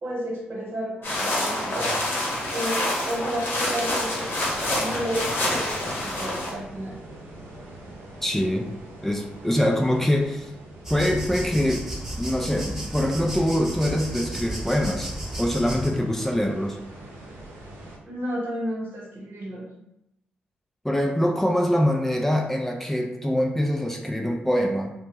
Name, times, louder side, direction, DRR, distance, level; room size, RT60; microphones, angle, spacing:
voice 1, 0.0-2.0 2.5-4.3 4.8-7.0 18.0-19.7, equal, 60° right, -4 dB, 1.1 m, -32 dB
sound 1, 1.0-6.5, left 1 dB, 55° left, 0.9 m, -27 dB
sound 2, 4.0-18.0, right 1 dB, 75° right, 0.6 m, -44 dB
voice 2, 8.2-8.7 9.0-10.5 10.9-11.8 12.2-15.1 15.4-16.8 20.8-24.9, equal, 5° left, 1 dB, 0.4 m, -24 dB
sound 3, 10.8-15.9, right 1 dB, 10° right, 0.8 m, -33 dB
2.0 x 2.0 x 3.3 m, 0.85 s
hypercardioid pair, 40°, 4 cm